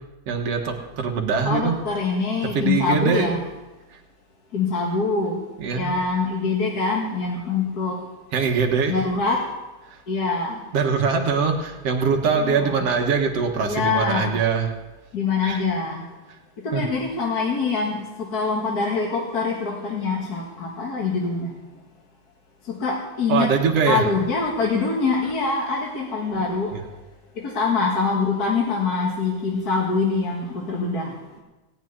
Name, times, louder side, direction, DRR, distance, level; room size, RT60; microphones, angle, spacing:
voice 1, 0.3-1.7 2.6-3.4 5.6-6.0 8.3-9.0 9.9-10.0 10.7-14.7 15.4-15.6 16.7-16.8 23.3-24.0 26.3-26.4 26.7-26.8, right 5 dB, 60° right, 3 dB, 2.1 m, -22 dB
voice 2, 1.4-3.4 4.5-5.4 5.7-8.0 8.9-9.4 10.1-10.6 12.4-12.8 13.6-14.4 15.1-16.0 16.6-21.5 22.7-23.5 23.9-26.7 27.4-31.1, left 4 dB, 40° left, -1 dB, 1.4 m, -24 dB
17.0 x 6.1 x 9.4 m, 1.1 s
omnidirectional pair, 3.7 m